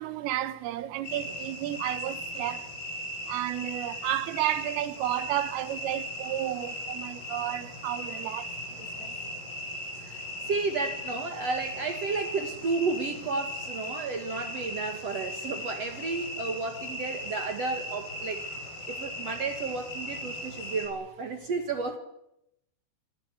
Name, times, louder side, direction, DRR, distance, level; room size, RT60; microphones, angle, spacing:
voice 1, 0.0-2.6 3.3-8.5, right 13 dB, 85° right, 3.8 m, -32 dB
sound 1, 1.0-20.9, left 1 dB, 50° left, 9.3 m, -38 dB
voice 2, 10.0-18.4 18.9-22.0, right 4 dB, 70° right, 1.5 m, -32 dB
27.0 x 25.0 x 7.0 m
omnidirectional pair, 5.7 m